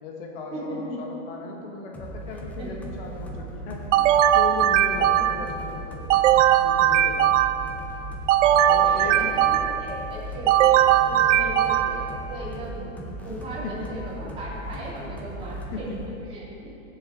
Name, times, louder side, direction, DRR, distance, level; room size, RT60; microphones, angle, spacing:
voice 1, 0.0-4.1 4.3-6.1 6.6-7.4 8.7-9.3 13.6-13.9 14.7-14.9 15.3-15.4 15.7-16.3 16.6-16.8, left 4 dB, 45° left, 0 dB, 1.3 m, -37 dB
voice 2, 0.5-0.9 2.3-2.9 5.1-5.2 8.8-10.8 11.1-16.0 16.3-16.5, right 1 dB, 15° right, -7 dB, 2.7 m, -37 dB
sound 1, 1.9-16.1, right 1 dB, 5° left, 0.6 m, -38 dB
sound 2, 3.9-5.6 6.1-7.8 8.3-9.9 10.5-12.2, right 11 dB, 70° right, 0.5 m, -19 dB
15.5 x 7.1 x 3.8 m, 2.9 s
supercardioid pair, 155°, 38 cm